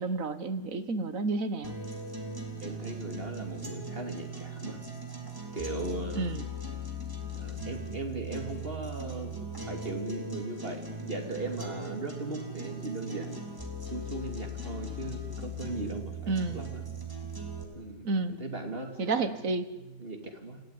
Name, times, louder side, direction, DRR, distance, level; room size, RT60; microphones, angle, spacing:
voice 1, 0.0-1.8 6.1-6.4 16.3-16.6 18.0-18.4 19.0-19.7, right 3 dB, 50° right, 12 dB, 1.7 m, -30 dB
sound 1, 1.6-17.6, right 1 dB, 10° right, 3.7 m, -39 dB
voice 2, 2.6-4.8 5.5-6.4 7.3-9.3 9.7-13.4 13.9-16.8 17.7-18.1 18.4-19.3 19.7-20.6, right 2 dB, 30° right, 4 dB, 3.3 m, -38 dB
28.0 x 17.0 x 9.8 m, 1.0 s
omnidirectional pair, 1.9 m